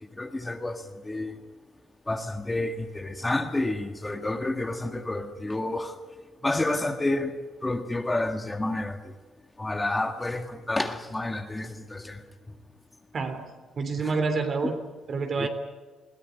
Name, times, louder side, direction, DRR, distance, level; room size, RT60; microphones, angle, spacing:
voice 1, 0.2-1.4 2.1-5.9 6.4-7.3 7.6-9.1 9.6-12.2 14.0-14.2 14.6-14.7 15.4-15.5, left 2 dB, 15° left, 5 dB, 1.9 m, -29 dB
voice 2, 13.1-13.5 13.8-14.7 15.1-15.5, right 4 dB, 45° right, 7 dB, 3.3 m, -28 dB
21.5 x 16.5 x 9.8 m, 1.3 s
cardioid pair, 90°, 0 cm